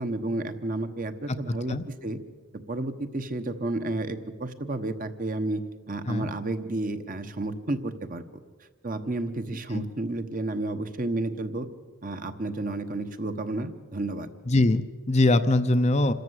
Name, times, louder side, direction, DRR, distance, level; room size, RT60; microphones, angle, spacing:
voice 1, 0.0-2.2 2.7-8.2 8.8-11.7 12.0-14.3, right 2 dB, 40° right, 9 dB, 1.1 m, -31 dB
voice 2, 14.5-16.1, left 2 dB, 30° left, 10 dB, 0.6 m, -22 dB
27.0 x 13.5 x 8.1 m, 1.5 s
head